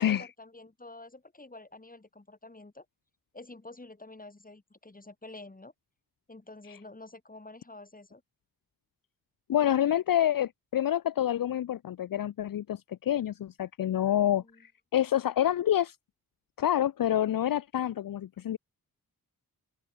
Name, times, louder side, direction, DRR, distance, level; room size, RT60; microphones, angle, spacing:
voice 1, 0.0-2.9 3.3-5.7 6.3-8.2 14.1-14.6, left 2 dB, 25° left, 3.9 m, -49 dB
voice 2, 9.5-16.0 16.6-18.6, left 11 dB, 65° left, 0.5 m, -27 dB
open air
wide cardioid pair, 95°, 37 cm